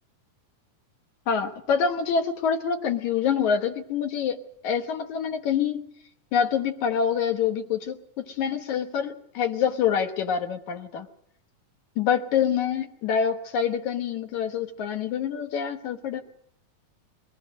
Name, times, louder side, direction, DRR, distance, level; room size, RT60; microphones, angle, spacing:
voice 1, 1.3-4.4 4.6-5.8 6.3-11.1 12.0-16.2, left 7 dB, 70° left, 6 dB, 2.6 m, -26 dB
22.5 x 18.5 x 6.4 m, 0.71 s
omnidirectional pair, 3.6 m